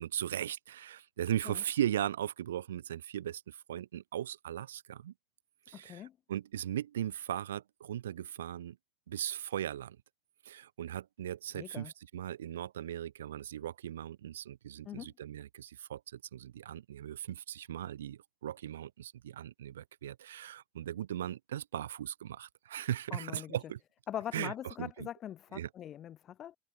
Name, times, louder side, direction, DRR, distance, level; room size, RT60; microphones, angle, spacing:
voice 1, 0.0-5.1 5.7-8.8 9.1-10.0 10.4-23.8 24.3-25.1 25.5-25.7, right 11 dB, 90° right, 2.0 m, -38 dB
voice 2, 5.7-6.1 11.5-11.9 14.8-15.1 23.1-23.6 24.1-26.6, left 11 dB, 45° left, 5.6 m, -42 dB
open air
hypercardioid pair, 85°, 0 cm